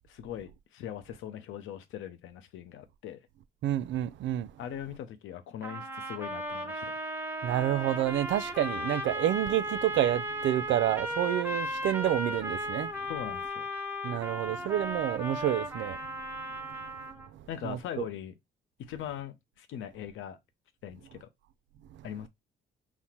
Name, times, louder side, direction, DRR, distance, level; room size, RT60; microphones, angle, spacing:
voice 1, 0.1-3.2 4.6-6.9 13.1-13.7 17.5-18.3 18.8-20.4 20.8-21.3 22.0-22.3, left 10 dB, 80° left, 0.7 m, -40 dB
voice 2, 3.6-4.5 7.4-12.9 14.0-16.0 16.5-16.6 17.6-18.1, right 12 dB, 70° right, 0.4 m, -29 dB
sound 1, 5.6-17.3, equal, 10° right, 0.8 m, -36 dB
4.1 x 2.1 x 4.4 m
cardioid pair, 90°, 20 cm